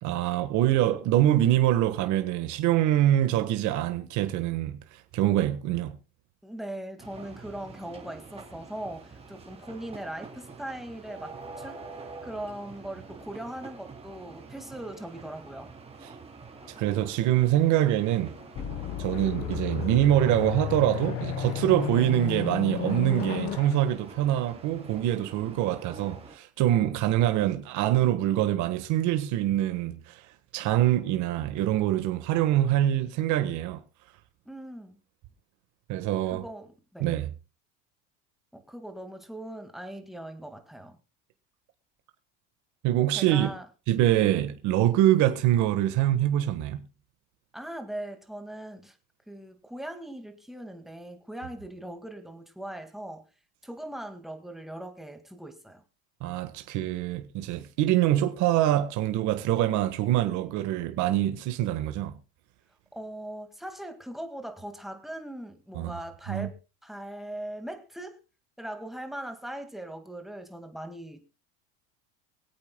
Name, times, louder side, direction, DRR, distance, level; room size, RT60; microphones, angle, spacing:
voice 1, 0.0-4.8 5.1-6.0 16.8-18.3 19.0-30.2 30.5-33.8 35.9-36.4 37.0-37.3 42.8-43.5 43.9-46.8 56.2-62.2 65.7-65.9 66.3-66.5, right 13 dB, 60° right, 1.5 m, -24 dB
voice 2, 6.4-11.8 12.2-15.7 34.5-35.0 36.3-37.1 38.5-41.0 43.1-43.7 47.5-49.0 49.3-53.3 53.6-55.8 62.9-66.6 66.8-68.2 68.6-71.2, right 1 dB, ahead, 2.0 m, -40 dB
sound 1, 7.0-26.4, right 4 dB, 20° right, 3.2 m, -46 dB
sound 2, 16.6-24.2, left 8 dB, 75° left, 3.0 m, -46 dB
sound 3, 18.6-23.6, left 10 dB, 45° left, 1.1 m, -33 dB
24.5 x 8.5 x 2.2 m
supercardioid pair, 115°, 34 cm